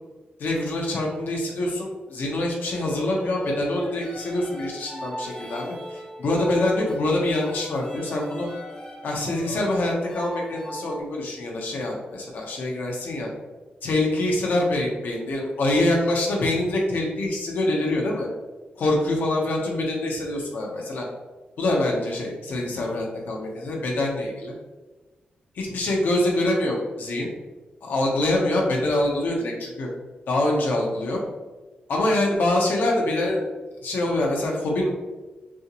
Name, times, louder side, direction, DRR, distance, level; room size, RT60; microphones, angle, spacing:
voice 1, 0.4-8.5 9.0-13.3 13.8-18.3 18.8-21.0 21.6-24.5 25.5-27.3 27.8-29.9 30.3-31.2 31.9-33.4 33.8-34.9, left 1 dB, 80° left, -1 dB, 1.1 m, -25 dB
sound 1, 2.7-11.0, left 1 dB, 25° left, 1.2 m, -37 dB
6.1 x 3.1 x 2.5 m, 1.2 s
wide cardioid pair, 135°, 3 cm